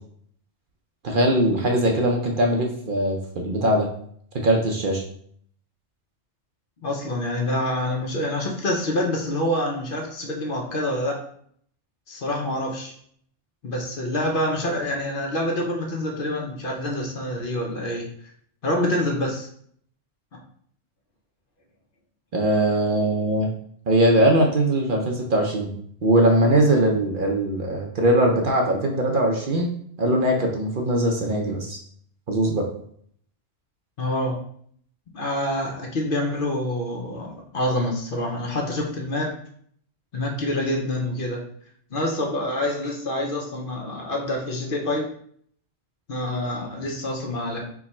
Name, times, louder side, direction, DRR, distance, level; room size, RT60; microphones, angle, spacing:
voice 1, 1.0-3.9 4.4-5.0 22.3-23.5 23.9-25.7 26.0-29.7 30.0-31.8 32.3-32.6, right 1 dB, 55° right, 1 dB, 0.8 m, -21 dB
voice 2, 6.8-11.2 12.1-12.9 13.6-18.1 18.6-19.5 20.3-20.4 34.0-34.4 35.1-39.3 40.1-41.4 41.9-45.1 46.1-47.7, left 1 dB, 55° left, 0 dB, 0.9 m, -26 dB
4.6 x 2.2 x 4.2 m, 0.62 s
omnidirectional pair, 1.2 m